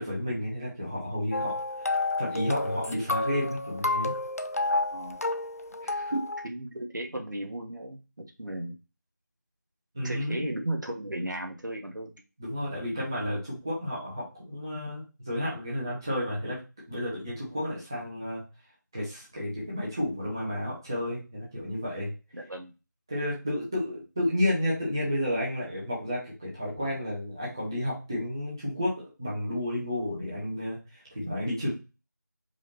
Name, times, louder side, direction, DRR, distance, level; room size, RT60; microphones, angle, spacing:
voice 1, 0.0-4.1 5.8-6.2 9.9-10.4 12.4-16.6 16.9-18.4 18.9-22.1 23.1-31.7, left 1 dB, 10° right, -7 dB, 0.8 m, -31 dB
sound 1, 1.3-6.5, left 2 dB, 50° left, 0.4 m, -30 dB
voice 2, 4.7-5.2 6.4-8.8 10.0-12.1 22.3-22.7, right 1 dB, 70° right, 2 dB, 1.3 m, -35 dB
4.9 x 2.7 x 4.0 m, 0.29 s
figure-of-eight pair, 170°, 10 cm